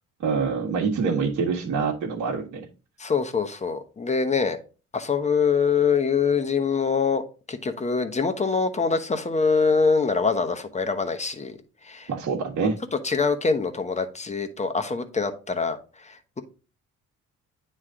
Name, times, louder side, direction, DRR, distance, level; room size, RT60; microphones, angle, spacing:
voice 1, 0.2-2.6 12.1-12.8, right 5 dB, 70° right, -3 dB, 1.5 m, -25 dB
voice 2, 3.0-4.6 4.9-7.2 7.5-11.6 11.8-12.1 13.0-16.4, left 5 dB, 25° left, 8 dB, 1.0 m, -24 dB
9.5 x 3.2 x 3.7 m, 0.34 s
cardioid pair, 90°, 30 cm